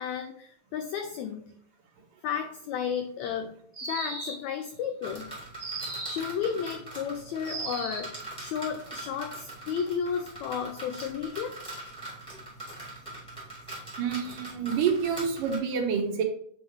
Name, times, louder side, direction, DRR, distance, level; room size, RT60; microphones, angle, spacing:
voice 1, 0.0-1.5 2.2-3.5 3.8-5.3 6.1-11.6, left 7 dB, 90° left, 7 dB, 1.6 m, -33 dB
sound 1, 3.7-4.5 5.6-6.3 7.4-8.2, right 3 dB, 15° right, 1.5 m, -36 dB
sound 2, 5.0-15.6, right 2 dB, ahead, 1.7 m, -42 dB
voice 2, 14.0-16.2, right 6 dB, 80° right, 3 dB, 2.5 m, -28 dB
8.4 x 3.6 x 3.2 m, 0.63 s
omnidirectional pair, 3.8 m